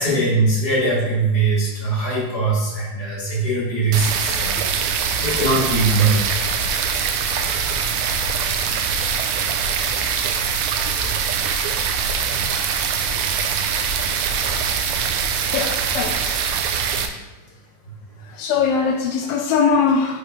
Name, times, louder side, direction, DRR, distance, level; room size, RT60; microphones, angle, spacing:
voice 1, 0.0-6.7 12.2-12.5, right 3 dB, 30° left, -7 dB, 2.7 m, -21 dB
sound 1, 3.9-17.1, right 6 dB, 80° right, 1.8 m, -23 dB
voice 2, 15.5-16.4 18.2-20.2, left 5 dB, 85° left, 3 dB, 1.6 m, -21 dB
6.5 x 5.8 x 3.1 m, 1.1 s
omnidirectional pair, 3.7 m